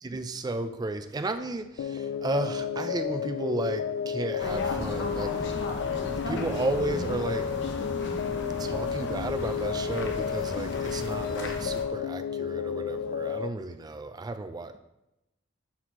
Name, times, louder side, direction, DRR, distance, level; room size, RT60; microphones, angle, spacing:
voice 1, 0.0-5.6 5.9-7.5 8.6-14.8, right 2 dB, 20° right, 9 dB, 0.3 m, -33 dB
sound 1, 1.8-13.5, left 8 dB, 85° left, 0.3 m, -32 dB
sound 2, 4.4-11.8, left 2 dB, 60° left, 0.8 m, -36 dB
11.0 x 4.2 x 3.0 m, 0.93 s
head